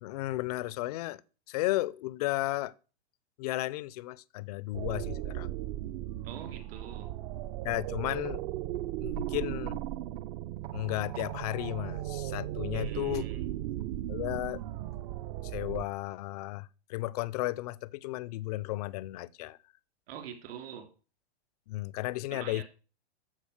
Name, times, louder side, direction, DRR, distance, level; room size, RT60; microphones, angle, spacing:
voice 1, 0.0-1.2 1.5-2.7 3.4-5.5 7.6-8.4 9.0-9.8 10.7-13.2 14.1-14.6 15.4-19.6 21.7-22.6, left 18 dB, 40° left, 0.5 m, -34 dB
sound 1, 4.7-15.8, right 14 dB, 35° right, 0.6 m, -36 dB
voice 2, 6.2-7.1 12.7-13.5 20.1-20.9 22.3-22.6, right 8 dB, 60° right, 3.0 m, -44 dB
14.0 x 5.2 x 6.5 m
hypercardioid pair, 155°, 33 cm